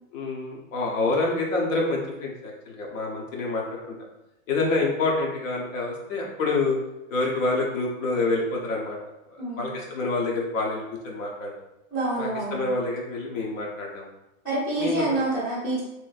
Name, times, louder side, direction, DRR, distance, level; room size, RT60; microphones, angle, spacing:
voice 1, 0.1-3.8 4.5-6.8 7.1-9.0 9.3-11.5 12.2-14.1 14.8-15.2, left 3 dB, 70° left, -2 dB, 1.0 m, -27 dB
voice 2, 9.4-9.7 11.9-12.7 14.4-15.8, right 2 dB, 5° left, -8 dB, 0.5 m, -27 dB
3.0 x 2.6 x 2.5 m, 0.92 s
supercardioid pair, 180°, 41 cm